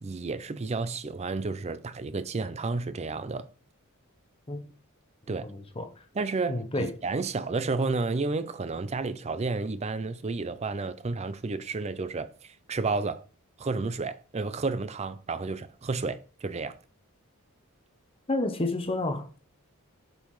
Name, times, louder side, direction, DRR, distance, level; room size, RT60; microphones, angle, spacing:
voice 1, 0.0-3.5 5.3-5.5 6.1-13.2 13.6-16.8, right 3 dB, 30° right, 0.4 m, -31 dB
voice 2, 5.4-5.9 6.5-6.9 18.3-19.4, left 2 dB, 25° left, 0.7 m, -30 dB
8.4 x 5.5 x 3.1 m
head